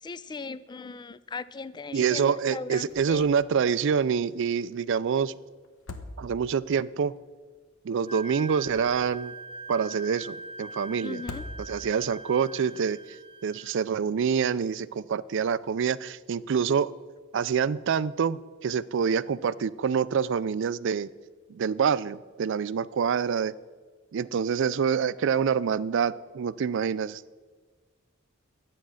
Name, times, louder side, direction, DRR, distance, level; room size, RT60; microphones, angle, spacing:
voice 1, 0.0-3.3 11.0-11.4, left 4 dB, 20° left, 17 dB, 0.3 m, -38 dB
voice 2, 1.9-5.3 6.2-7.1 7.8-9.3 9.7-11.2 11.6-13.0 13.4-16.9 17.3-21.1 21.5-23.5 24.1-27.2, right 6 dB, 60° right, 18 dB, 0.4 m, -26 dB
sound 1, 2.9-3.4 3.7-3.8 5.6-6.7 8.4-9.3 11.1-12.1, left 2 dB, 70° left, 1.0 m, -42 dB
Wind instrument woodwind instrument, 8.1-13.9, right 2 dB, 25° right, 0.7 m, -43 dB
11.5 x 8.5 x 6.3 m, 1.4 s
head